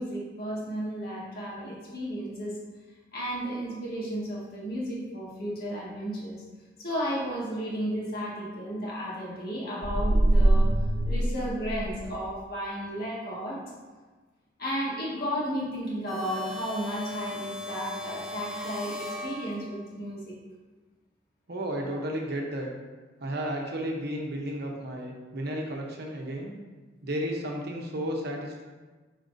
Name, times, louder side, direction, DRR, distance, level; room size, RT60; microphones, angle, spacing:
voice 1, 0.0-2.6 3.1-6.4 6.8-10.8 11.0-13.6 14.6-20.4, equal, 55° left, -6 dB, 1.9 m, -33 dB
sound 1, 9.8-12.2, right 1 dB, 40° right, 0.4 m, -23 dB
sound 2, 16.1-20.0, left 1 dB, 5° right, 0.8 m, -38 dB
voice 2, 21.5-22.7 23.2-26.5 27.0-28.6, equal, 60° right, 0 dB, 1.0 m, -33 dB
9.0 x 4.2 x 2.7 m, 1.3 s
head